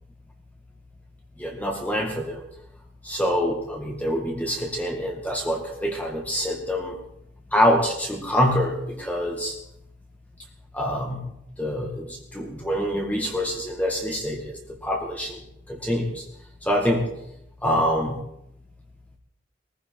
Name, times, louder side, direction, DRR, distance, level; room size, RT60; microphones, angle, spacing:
voice 1, 1.4-2.4 3.0-7.0 7.5-9.6 10.7-15.4 15.7-16.3 16.6-17.1 17.6-18.2, equal, 10° left, 0 dB, 1.9 m, -25 dB
20.5 x 15.0 x 4.6 m, 0.78 s
head